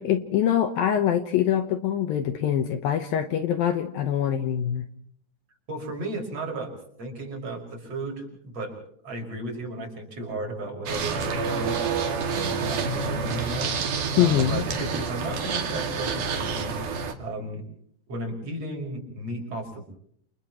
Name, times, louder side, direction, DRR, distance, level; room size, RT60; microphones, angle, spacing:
voice 1, 0.0-4.9 14.1-14.6, left 10 dB, 70° left, 7 dB, 2.6 m, -24 dB
voice 2, 5.7-6.7 7.0-8.8 9.0-17.6 18.1-19.8, right 1 dB, 35° right, 1 dB, 6.4 m, -34 dB
sound 1, 10.9-17.1, right 5 dB, 55° right, 3.3 m, -28 dB
29.0 x 29.0 x 3.1 m, 0.65 s
omnidirectional pair, 4.7 m